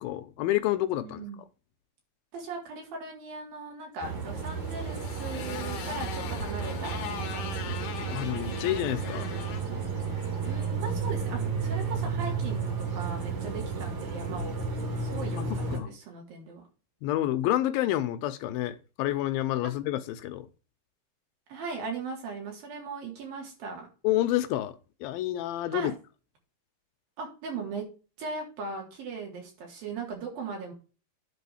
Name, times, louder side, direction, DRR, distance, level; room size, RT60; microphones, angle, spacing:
voice 1, 0.0-1.2 8.1-9.3 15.7-15.9 17.0-20.5 24.0-24.8 25.0-25.9, left 14 dB, 85° left, 2.6 m, -28 dB
voice 2, 1.0-1.4 2.3-7.8 10.5-16.6 21.5-23.9 25.7-25.9 27.2-27.8 28.2-30.7, right 4 dB, 80° right, 5.4 m, -39 dB
sound 1, 4.0-15.8, right 4 dB, 55° right, 3.8 m, -32 dB
Motorcycle, 4.3-10.7, left 8 dB, 65° left, 2.7 m, -41 dB
10.5 x 4.1 x 7.1 m
omnidirectional pair, 4.1 m